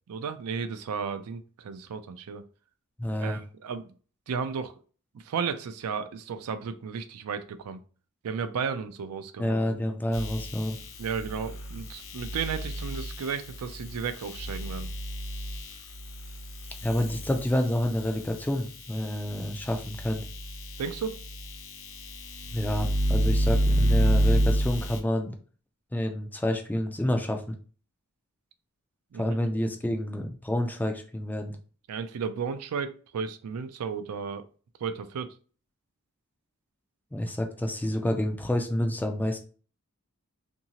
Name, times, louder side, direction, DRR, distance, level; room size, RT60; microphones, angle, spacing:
voice 1, 0.1-2.4 3.2-3.9 4.3-4.7 5.1-7.8 8.2-9.5 11.0-14.9 20.8-21.2 29.1-29.3 31.9-34.4 34.8-35.3, right 6 dB, 75° right, 9 dB, 0.4 m, -34 dB
voice 2, 3.0-3.4 9.4-10.8 16.8-20.2 22.5-25.4 25.9-27.5 29.1-31.6 37.1-39.4, left 1 dB, 10° left, 4 dB, 0.3 m, -28 dB
sound 1, 10.1-18.5 18.9-25.0, equal, 60° left, 0.7 m, -30 dB
2.7 x 2.6 x 2.8 m, 0.39 s
head